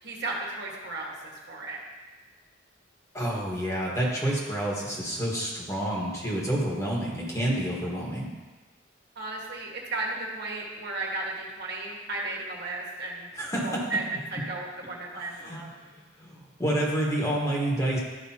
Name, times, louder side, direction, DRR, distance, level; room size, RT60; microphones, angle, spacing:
voice 1, 0.0-1.8 9.1-13.3 13.6-15.7, right 2 dB, 60° right, -2 dB, 1.5 m, -34 dB
voice 2, 3.1-8.3 13.4-13.9 15.4-15.6 16.2-18.0, right 1 dB, 15° left, -4 dB, 1.5 m, -28 dB
12.5 x 5.1 x 2.9 m, 1.2 s
head